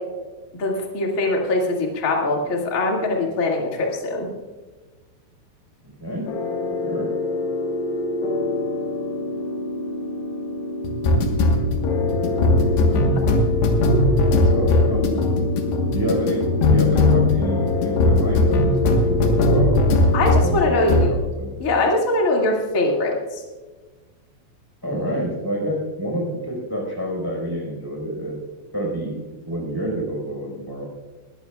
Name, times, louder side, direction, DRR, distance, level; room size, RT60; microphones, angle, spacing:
voice 1, 0.5-4.3 20.1-21.1 21.6-23.4, left 2 dB, 45° left, -1 dB, 1.0 m, -22 dB
voice 2, 5.8-6.3 6.8-7.1 12.9-13.3 14.4-15.3 15.9-19.8 20.4-21.5 24.8-28.4 28.7-29.2 29.5-30.8, right 1 dB, 5° right, -1 dB, 3.6 m, -28 dB
sound 1, 6.3-20.5 20.9-21.2, left 2 dB, 70° left, 3.1 m, -20 dB
20.0 x 14.5 x 2.4 m, 1.3 s
omnidirectional pair, 5.4 m